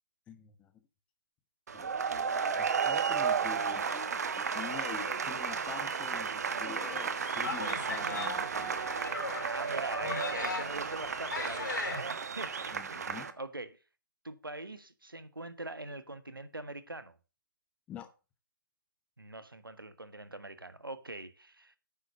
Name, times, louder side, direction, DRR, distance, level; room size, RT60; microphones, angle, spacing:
voice 1, 0.3-0.7 1.7-8.8 12.7-13.3 17.9-18.1, left 8 dB, 10° left, 0.8 m, -47 dB
sound 1, 1.7-13.3, right 6 dB, 50° right, 1.2 m, -33 dB
sound 2, 6.8-12.0, left 3 dB, 55° left, 4.9 m, -39 dB
voice 2, 9.4-13.8 14.2-17.2 19.2-21.7, right 2 dB, 80° right, 1.5 m, -43 dB
9.5 x 7.3 x 6.4 m
figure-of-eight pair, 140°, 11 cm